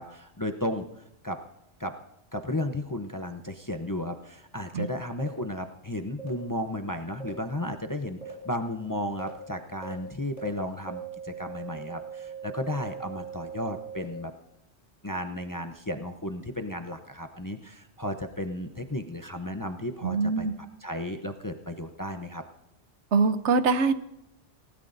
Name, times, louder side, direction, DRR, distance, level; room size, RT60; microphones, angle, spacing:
voice 1, 0.0-1.4 1.8-1.9 2.3-14.3 15.0-20.5 20.8-22.4, left 1 dB, 20° left, 5 dB, 0.6 m, -34 dB
sound 1, 5.2-5.3 6.2-6.3 7.2-7.3 8.2-8.3 9.2-9.3 9.8-9.9 10.4-10.5 10.9-14.0, right 8 dB, 35° right, 6.4 m, -40 dB
voice 2, 20.0-20.5 23.1-23.9, right 4 dB, 80° right, 11 dB, 1.1 m, -23 dB
28.0 x 16.5 x 2.6 m, 0.82 s
omnidirectional pair, 1.2 m